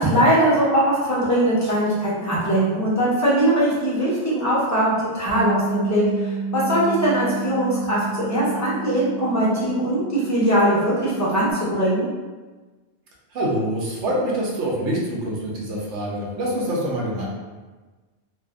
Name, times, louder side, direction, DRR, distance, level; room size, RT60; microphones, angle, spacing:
voice 1, 0.0-12.0, right 1 dB, 20° left, -8 dB, 0.7 m, -21 dB
Bass guitar, 5.3-11.5, right 4 dB, 75° left, 0.8 m, -30 dB
voice 2, 13.3-17.3, right 1 dB, 85° right, -3 dB, 1.0 m, -25 dB
2.5 x 2.5 x 2.3 m, 1.3 s
omnidirectional pair, 1.2 m